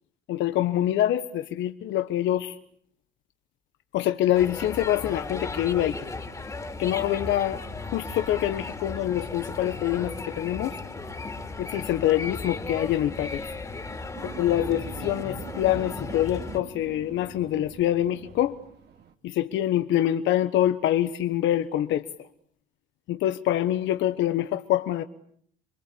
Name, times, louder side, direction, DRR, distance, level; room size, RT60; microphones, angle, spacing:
voice 1, 0.3-2.6 3.9-5.9 6.8-7.6 7.9-10.8 11.6-13.5 14.2-18.6 19.2-22.3 23.1-25.0, left 12 dB, 70° left, 1.3 m, -25 dB
sound 1, 4.3-16.6, left 3 dB, 15° left, 2.9 m, -36 dB
sound 2, 5.0-18.7, left 7 dB, 45° left, 2.9 m, -50 dB
sound 3, 14.1-19.1, right 9 dB, 60° right, 2.3 m, -44 dB
27.5 x 23.5 x 8.6 m
cardioid pair, 130°, 20 cm